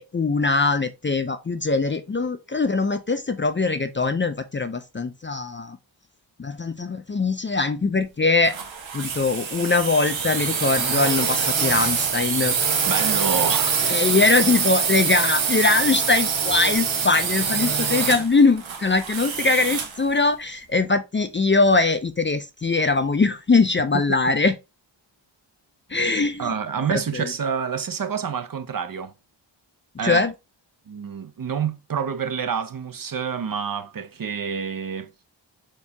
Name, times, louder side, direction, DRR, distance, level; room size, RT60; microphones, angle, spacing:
voice 1, 0.0-5.8 6.4-8.6 8.9-12.6 13.8-24.6 25.9-26.5 26.9-27.3 30.0-30.3, left 3 dB, 25° left, 0.4 m, -22 dB
sound 1, 8.4-20.0, right 6 dB, 90° right, 0.9 m, -24 dB
voice 2, 12.9-13.8 26.4-29.1 30.0-30.2 30.9-35.1, right 7 dB, 50° right, 0.6 m, -28 dB
4.4 x 2.8 x 3.4 m
wide cardioid pair, 70°, 45 cm